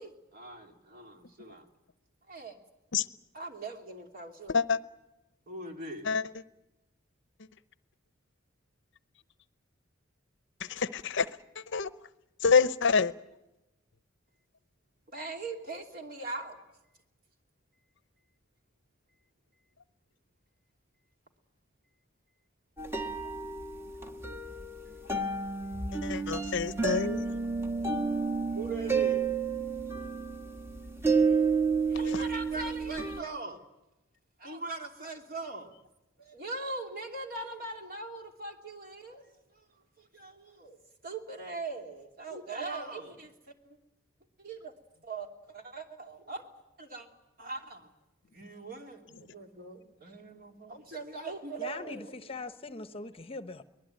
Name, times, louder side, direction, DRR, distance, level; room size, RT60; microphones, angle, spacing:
voice 1, 0.0-1.7 2.3-2.6 3.3-4.8 5.5-6.1 15.1-16.6 28.5-29.3 31.9-33.7 34.4-35.7 36.2-43.3 43.6-43.8 44.4-44.7 45.0-46.5 46.8-47.1 47.4-47.9 48.3-52.3, right 3 dB, 45° right, 3 dB, 3.0 m, -41 dB
voice 2, 10.7-11.3 11.7-11.9 12.4-13.1 26.0-27.3, left 5 dB, 60° left, 15 dB, 0.8 m, -26 dB
sound 1, 22.8-33.2, right 4 dB, 10° right, 1.5 m, -31 dB
voice 3, 51.6-53.6, left 3 dB, 30° left, 11 dB, 1.0 m, -41 dB
23.5 x 20.0 x 9.2 m, 0.97 s
head